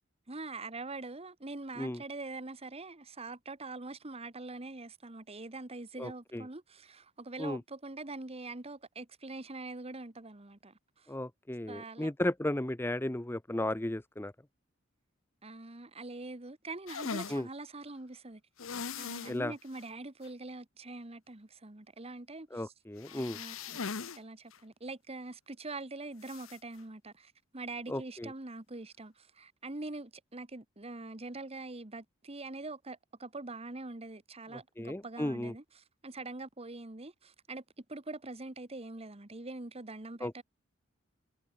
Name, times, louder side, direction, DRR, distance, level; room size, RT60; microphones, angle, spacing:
voice 1, 0.3-11.1 11.7-12.1 15.4-18.4 18.9-22.7 23.1-23.8 24.1-40.4, right 2 dB, 30° right, 1.5 m, -44 dB
voice 2, 6.0-6.4 7.4-7.6 11.1-14.3 17.3-17.5 19.3-19.5 22.5-23.4 27.9-28.3 34.8-35.5 40.2-40.4, left 1 dB, 10° left, 0.8 m, -35 dB
sound 1, 16.9-17.4 18.6-19.4 19.7-19.8 20.2-20.3 23.0-24.2 24.5-24.6 26.2-26.6, left 5 dB, 80° left, 1.0 m, -39 dB
head